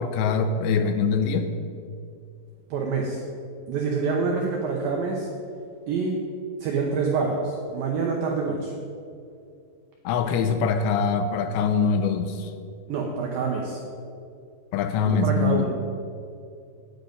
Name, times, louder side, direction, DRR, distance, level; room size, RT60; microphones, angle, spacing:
voice 1, 0.0-1.5 10.0-12.5 14.7-15.7, left 5 dB, 80° left, 8 dB, 2.7 m, -23 dB
voice 2, 2.7-3.2 3.7-5.3 5.9-6.2 6.6-8.7 12.9-13.8 15.0-15.7, right 4 dB, 80° right, 0 dB, 2.0 m, -26 dB
9.8 x 9.3 x 5.2 m, 2.4 s
omnidirectional pair, 5.3 m